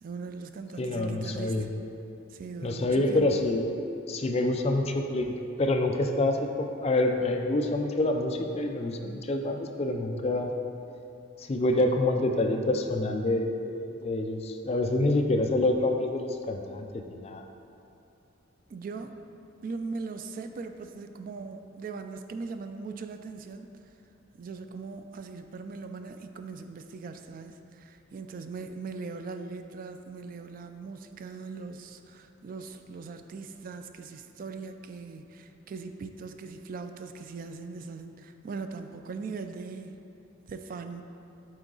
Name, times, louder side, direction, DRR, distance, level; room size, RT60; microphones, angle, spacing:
voice 1, 0.0-1.7 2.3-3.5 18.7-19.2 19.6-23.7 24.4-40.0 40.5-41.0, right 4 dB, 45° right, 7 dB, 0.3 m, -40 dB
voice 2, 0.8-1.7 2.6-3.7 4.1-10.5 11.4-17.4, left 2 dB, 30° left, 4 dB, 0.4 m, -27 dB
8.1 x 4.0 x 3.8 m, 2.7 s
head